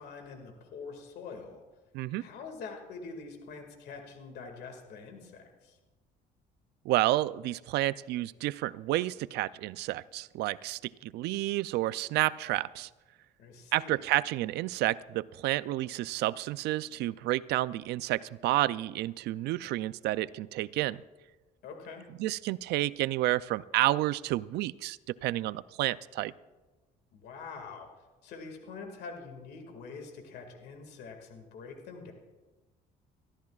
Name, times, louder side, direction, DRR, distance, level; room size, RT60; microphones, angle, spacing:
voice 1, 0.0-1.6 2.2-5.8 13.4-14.0 21.6-22.1 27.1-27.9 28.2-32.1, left 4 dB, 75° left, 4 dB, 2.1 m, -45 dB
voice 2, 6.8-12.9 13.7-21.0 22.2-26.3, right 16 dB, 80° right, 17 dB, 0.4 m, -30 dB
23.5 x 13.5 x 2.4 m, 1.2 s
cardioid pair, 110°, 17 cm